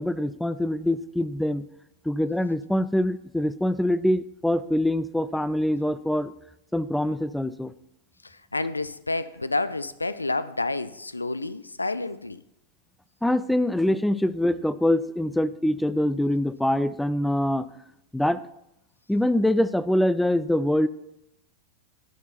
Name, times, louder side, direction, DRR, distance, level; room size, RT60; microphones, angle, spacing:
voice 1, 0.0-1.7 2.1-6.3 6.7-7.7 13.2-17.7 18.1-18.4 19.1-20.9, left 1 dB, 5° left, 0.3 m, -24 dB
voice 2, 8.2-12.4, left 2 dB, 80° left, 0.3 m, -29 dB
11.5 x 5.9 x 4.4 m
figure-of-eight pair, 90°, 0 cm